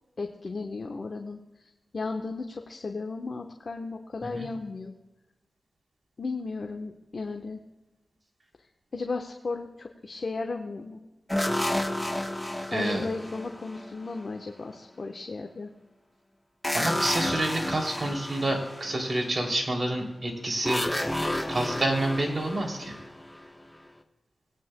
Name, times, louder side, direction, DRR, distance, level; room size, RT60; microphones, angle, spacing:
voice 1, 0.2-1.4 1.9-4.9 6.2-7.6 8.9-11.0 12.7-15.7, left 3 dB, 60° left, 3 dB, 1.0 m, -35 dB
sound 1, 11.3-14.3 16.6-19.4 20.6-23.7, left 1 dB, 10° left, 1.0 m, -31 dB
voice 2, 12.7-13.0 16.7-20.8 21.5-22.9, right 1 dB, 40° right, 0 dB, 2.8 m, -28 dB
19.0 x 9.4 x 2.2 m, 1.0 s
cardioid pair, 60°, 0 cm